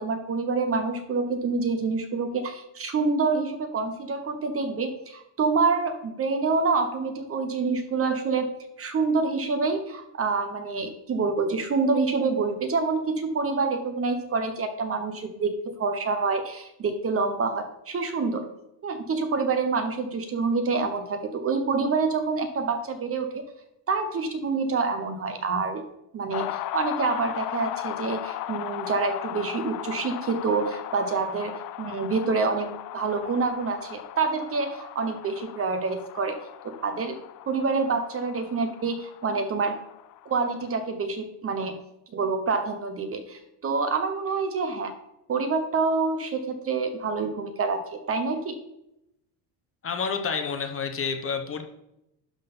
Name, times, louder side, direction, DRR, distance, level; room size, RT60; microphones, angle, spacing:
voice 1, 0.0-8.5 8.8-18.5 18.8-23.4 23.9-25.8 26.1-36.4 36.6-37.2 37.5-39.8 40.3-41.8 42.1-44.9 45.3-48.6, right 4 dB, 30° right, 8 dB, 0.8 m, -27 dB
sound 1, 26.3-40.8, left 13 dB, 50° left, 0.5 m, -37 dB
voice 2, 49.8-51.6, left 5 dB, 30° left, 5 dB, 0.9 m, -29 dB
11.5 x 3.8 x 5.4 m, 0.84 s
cardioid pair, 135°, 46 cm